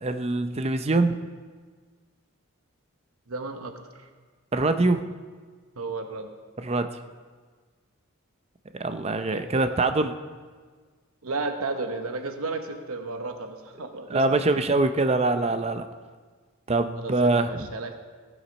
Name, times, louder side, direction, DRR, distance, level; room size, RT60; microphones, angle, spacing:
voice 1, 0.0-1.2 4.5-5.0 6.6-6.9 8.7-10.1 14.1-15.9 16.7-17.7, right 2 dB, 30° right, 9 dB, 0.6 m, -24 dB
voice 2, 3.3-3.8 5.8-6.3 9.3-9.7 11.2-14.2 17.0-18.0, right 3 dB, 80° right, 6 dB, 1.0 m, -33 dB
16.0 x 7.2 x 5.3 m, 1.5 s
head